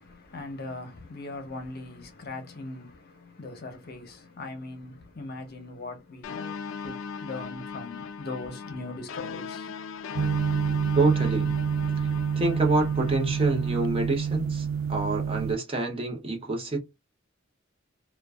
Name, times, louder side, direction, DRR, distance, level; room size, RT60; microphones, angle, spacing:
voice 1, 0.0-6.4 6.8-9.7, left 2 dB, 50° left, 0.7 m, -40 dB
sound 1, 6.2-13.9, left 5 dB, 85° left, 0.4 m, -39 dB
sound 2, 10.1-15.5, right 7 dB, 80° right, 0.3 m, -28 dB
voice 2, 10.9-11.5 12.0-12.1 12.4-16.8, right 2 dB, 30° right, 0.7 m, -27 dB
2.5 x 2.2 x 2.3 m
head